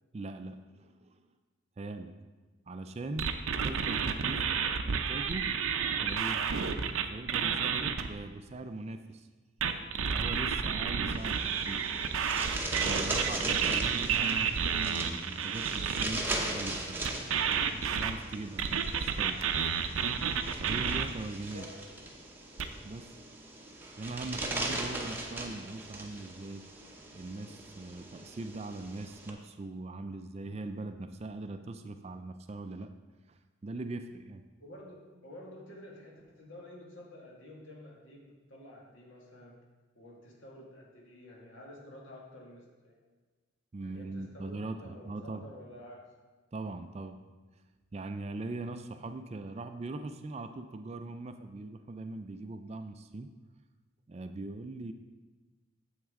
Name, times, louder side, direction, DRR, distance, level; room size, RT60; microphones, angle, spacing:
voice 1, 0.1-1.2 1.8-2.1 2.7-3.3 3.6-4.6 4.8-5.5 6.0-6.5 7.1-9.3 9.7-11.8 12.8-17.0 17.7-19.4 20.6-21.7 22.8-23.1 24.0-26.6 27.1-32.9 33.3-34.4 43.7-45.4 46.5-47.2 47.9-53.3 54.1-54.9, right 2 dB, 30° right, 8 dB, 0.4 m, -41 dB
sound 1, 3.2-8.1 9.6-16.0 17.0-21.0 22.6-22.7, right 7 dB, 85° right, 0.6 m, -30 dB
sound 2, 11.1-29.3, right 2 dB, 10° right, 0.8 m, -39 dB
voice 2, 21.5-22.0 34.6-39.5 39.9-43.1 43.8-46.0, left 1 dB, 70° left, -2 dB, 1.9 m, -50 dB
9.0 x 7.3 x 3.6 m, 1.3 s
head